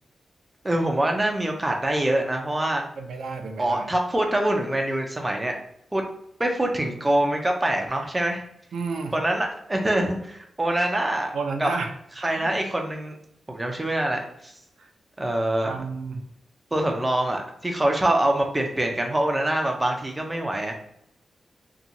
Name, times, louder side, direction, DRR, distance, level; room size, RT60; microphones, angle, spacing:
voice 1, 0.6-2.8 3.6-5.6 5.9-6.0 6.4-8.4 9.1-11.3 11.6-11.7 12.2-13.1 13.5-14.5 15.2-15.7 16.7-20.7, right 1 dB, 15° right, 2 dB, 0.5 m, -24 dB
voice 2, 3.0-3.9 8.7-9.1 11.3-11.9 12.2-12.5 14.8-14.9 15.6-16.2, right 4 dB, 85° right, 4 dB, 0.4 m, -31 dB
2.8 x 2.3 x 2.5 m, 0.74 s
wide cardioid pair, 115°, 0 cm